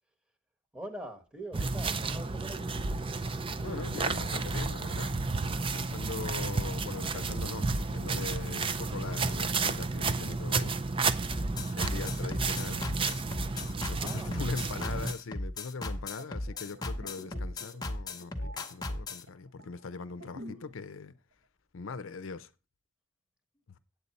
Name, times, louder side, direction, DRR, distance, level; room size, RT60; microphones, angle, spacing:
voice 1, 0.7-2.7 13.9-14.4, right 1 dB, 5° right, 1.2 m, -43 dB
sound 1, 1.5-15.1, right 4 dB, 25° right, 0.4 m, -32 dB
voice 2, 3.6-5.1 5.4-10.8 11.8-12.9 13.8-21.1 21.7-22.5, left 4 dB, 80° left, 0.6 m, -41 dB
sound 2, 11.3-19.2, left 2 dB, 20° left, 0.8 m, -36 dB
sound 3, 16.0-20.8 21.1-21.3, equal, 70° right, 1.5 m, -50 dB
8.2 x 8.2 x 4.1 m
head